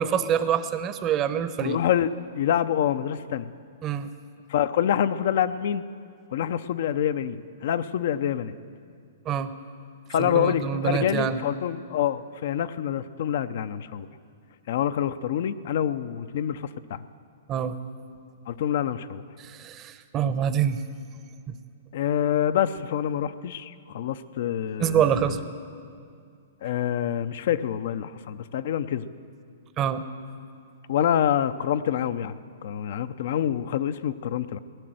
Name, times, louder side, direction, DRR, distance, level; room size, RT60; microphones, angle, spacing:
voice 1, 0.0-1.8 3.8-4.1 9.2-9.5 10.2-11.4 17.5-17.8 19.4-20.8 21.5-21.6 24.8-25.4 29.8-30.0, right 8 dB, 30° right, 11 dB, 0.8 m, -26 dB
voice 2, 1.6-3.5 4.5-5.8 6.3-8.6 10.1-14.1 14.7-17.0 18.5-19.2 21.9-25.4 26.6-29.1 30.9-34.6, left 10 dB, 60° left, 13 dB, 0.6 m, -26 dB
16.5 x 11.0 x 7.8 m, 2.3 s
hypercardioid pair, 135°, 0 cm